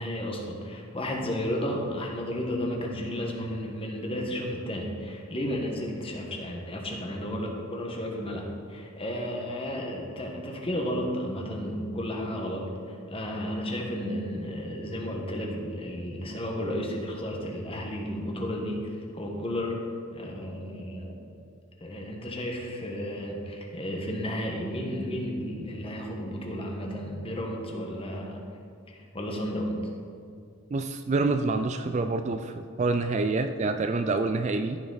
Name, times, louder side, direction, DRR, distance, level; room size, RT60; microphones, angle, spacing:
voice 1, 0.0-21.2 21.8-28.4 28.9-29.7, equal, 25° left, 0 dB, 1.3 m, -33 dB
voice 2, 30.7-34.8, right 3 dB, 30° right, 8 dB, 0.3 m, -27 dB
14.0 x 6.0 x 4.0 m, 2.4 s
head